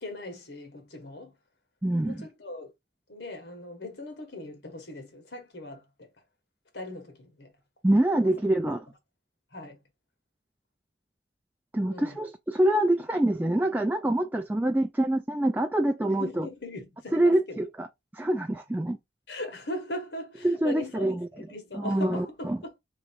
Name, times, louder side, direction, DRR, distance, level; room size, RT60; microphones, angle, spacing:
voice 1, 0.0-1.3 2.0-2.7 3.1-6.1 6.7-7.5 8.2-8.7 9.5-9.8 11.9-12.2 16.0-17.6 19.3-22.7, left 1 dB, 85° left, 1.6 m, -40 dB
voice 2, 1.8-2.1 7.8-8.8 11.7-16.5 17.1-17.9 18.1-19.0 20.4-21.2 21.8-22.6, right 1 dB, 10° right, 0.3 m, -25 dB
3.5 x 3.1 x 4.5 m
head